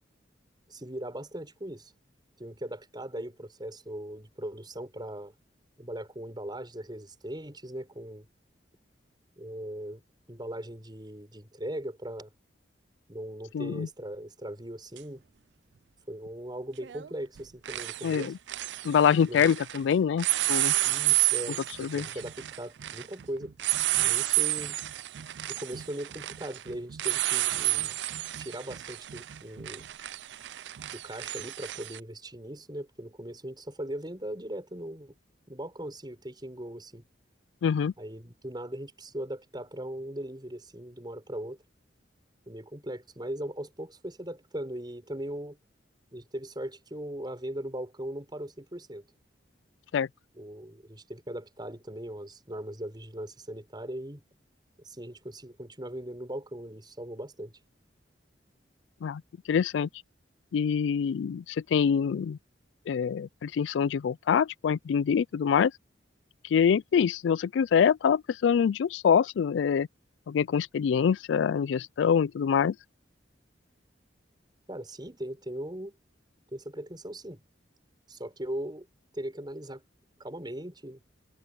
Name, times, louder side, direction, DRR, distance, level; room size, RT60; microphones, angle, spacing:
voice 1, 0.7-1.9 2.4-5.3 5.8-8.3 9.4-10.0 10.3-12.3 13.1-15.2 16.1-18.3 19.3-19.5 20.8-23.5 24.0-24.8 25.5-27.9 28.4-29.8 30.9-35.2 35.5-37.1 38.0-41.6 42.5-45.6 46.1-49.0 50.3-54.2 54.8-57.5 74.7-76.0 76.5-77.4 78.1-78.9 79.1-79.8 80.2-81.0, right 1 dB, 25° right, 6.3 m, -39 dB
voice 2, 13.5-13.9 18.0-18.3 18.8-20.7 21.8-22.1 37.6-37.9 49.9-50.1 59.0-59.2 59.5-59.9 60.5-62.4 62.9-65.7 66.5-69.9 70.3-72.8, left 7 dB, 75° left, 0.3 m, -25 dB
sound 1, 15.0-15.1 16.8-17.1 17.4-19.8 20.2-32.0, right 17 dB, 65° right, 0.4 m, -31 dB
head